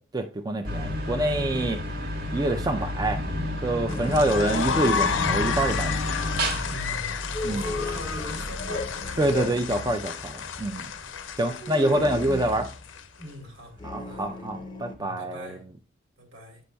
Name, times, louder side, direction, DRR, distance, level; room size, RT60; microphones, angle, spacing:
voice 1, 0.1-1.8 2.3-3.2 3.6-6.0 7.4-7.6 9.2-10.9 11.4-12.7 13.8-15.6, right 1 dB, 20° right, 0.4 m, -26 dB
sound 1, 0.6-13.0, left 1 dB, 60° right, 1.4 m, -32 dB
sound 2, 3.9-13.2, left 7 dB, 70° left, 0.5 m, -32 dB
sound 3, 3.9-5.6 7.3-10.0 11.5-12.8 13.8-15.0, left 2 dB, 25° left, 0.6 m, -36 dB
voice 2, 6.7-9.4 13.2-13.8 14.0-14.3 15.0-15.6 16.2-16.6, equal, 75° right, 1.7 m, -41 dB
8.3 x 5.1 x 2.2 m
head